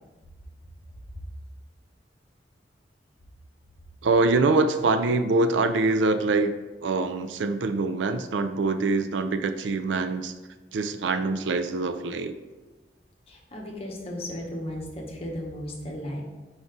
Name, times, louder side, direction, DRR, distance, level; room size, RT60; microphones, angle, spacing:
voice 1, 4.0-6.5 6.8-10.3 10.7-12.4, right 3 dB, 85° right, 10 dB, 0.4 m, -24 dB
voice 2, 13.3-16.2, left 1 dB, 35° left, -1 dB, 1.0 m, -35 dB
4.7 x 4.1 x 5.0 m, 1.3 s
head